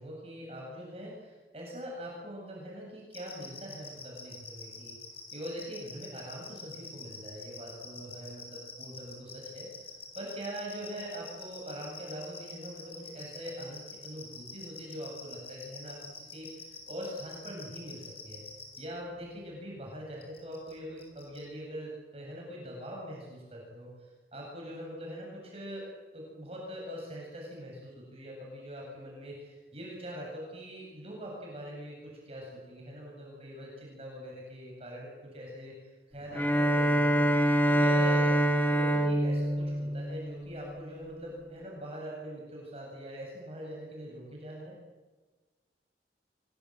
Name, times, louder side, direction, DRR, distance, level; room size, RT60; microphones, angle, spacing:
voice 1, 0.0-5.0 5.3-18.4 18.8-25.9 26.1-37.3 37.6-44.8, equal, 35° right, -2 dB, 7.8 m, -43 dB
sound 1, 3.1-18.8 20.2-20.7 21.0-21.4, left 6 dB, 35° left, 7.5 m, -46 dB
Bowed string instrument, 36.3-40.8, right 1 dB, 10° left, 2.1 m, -26 dB
26.0 x 22.5 x 9.1 m, 1.3 s
head